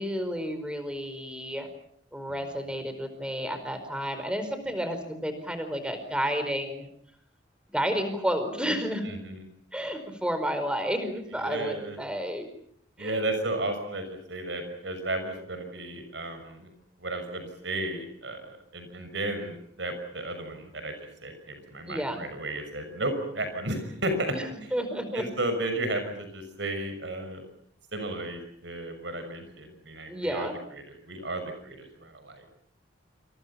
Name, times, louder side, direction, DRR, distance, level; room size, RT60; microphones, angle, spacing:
voice 1, 0.0-1.7 2.1-6.9 7.7-9.1 9.7-12.5 13.0-13.2 21.9-22.2 24.3-25.2 30.1-30.5, equal, 5° right, 9 dB, 4.7 m, -31 dB
voice 2, 9.0-9.4 11.4-12.0 13.0-16.7 17.0-21.0 21.2-24.7 25.1-27.4 27.9-32.5, right 1 dB, 70° right, 7 dB, 6.3 m, -34 dB
28.5 x 28.0 x 5.8 m, 0.67 s
head